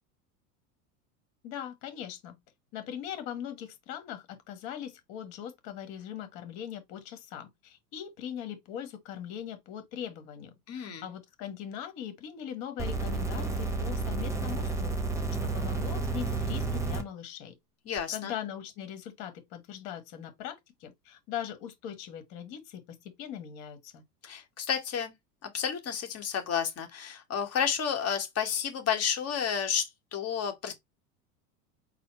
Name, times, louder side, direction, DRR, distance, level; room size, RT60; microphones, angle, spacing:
voice 1, 1.4-2.4 2.7-15.0 15.4-17.5 18.1-24.0, left 9 dB, 50° left, 1.4 m, -40 dB
voice 2, 10.7-11.1 17.9-18.3 24.2-25.1 25.5-30.7, left 7 dB, 30° left, 1.4 m, -31 dB
sound 1, 12.8-17.0 18.0-18.1, right 3 dB, 5° right, 1.1 m, -31 dB
4.1 x 2.2 x 4.3 m
hypercardioid pair, 85°, 46 cm